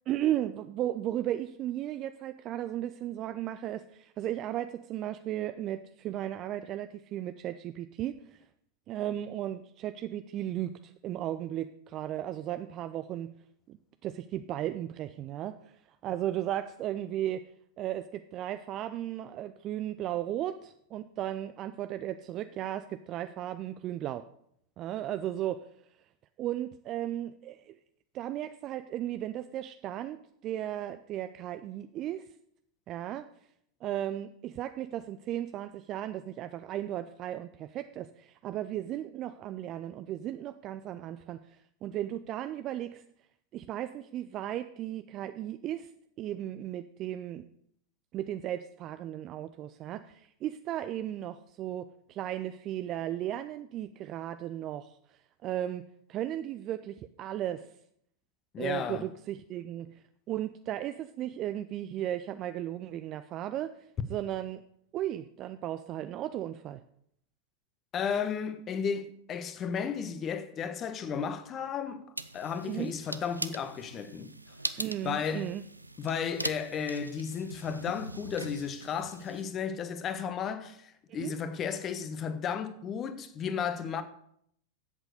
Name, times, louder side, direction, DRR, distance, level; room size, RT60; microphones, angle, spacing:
voice 1, 0.1-8.4 8.9-13.3 13.7-13.8 14.0-15.8 16.0-17.4 17.8-24.2 24.8-25.7 26.4-27.8 28.1-32.3 32.9-33.2 33.8-43.0 43.5-45.9 46.2-47.5 48.1-57.7 58.6-63.7 64.1-64.6 64.9-66.8 72.6-72.9 74.8-75.6 81.1-81.3, right 12 dB, 35° right, 0.5 m, -35 dB
voice 2, 58.5-59.1 67.9-72.1 72.3-74.3 75.0-75.5 76.0-84.0, left 7 dB, 30° left, 1.2 m, -34 dB
sound 1, 72.2-79.5, right 2 dB, 85° right, 0.6 m, -41 dB
10.5 x 8.1 x 6.6 m
figure-of-eight pair, 90°, 0 cm